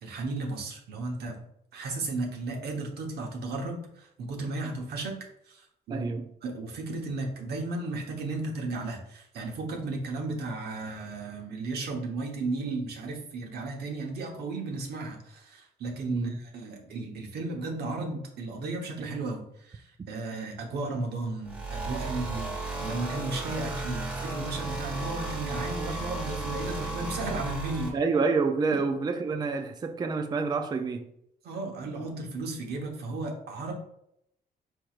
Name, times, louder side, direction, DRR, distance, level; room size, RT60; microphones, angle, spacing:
voice 1, 0.0-1.4 1.7-5.2 5.5-6.1 6.4-28.0 31.4-33.7, right 3 dB, 80° right, 1.0 m, -34 dB
voice 2, 5.9-6.3 16.1-16.4 27.9-31.1, right 4 dB, 25° right, 0.4 m, -28 dB
sound 1, 21.4-27.9, right 2 dB, 5° right, 1.4 m, -34 dB
4.6 x 4.5 x 2.4 m
cardioid pair, 110°, 17 cm